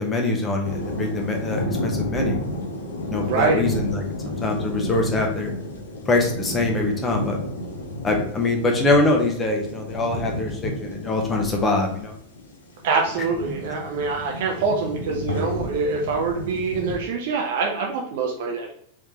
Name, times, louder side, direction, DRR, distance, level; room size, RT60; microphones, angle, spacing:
voice 1, 0.0-2.4 3.1-4.0 4.4-5.5 6.1-7.4 8.0-12.2, left 2 dB, 20° left, 1 dB, 1.1 m, -23 dB
sound 1, 0.6-17.0, left 1 dB, 65° left, 1.0 m, -31 dB
voice 2, 3.2-3.8 12.8-18.7, right 4 dB, 50° right, 0 dB, 0.7 m, -25 dB
4.6 x 3.6 x 2.9 m, 0.64 s
figure-of-eight pair, 90°, 0 cm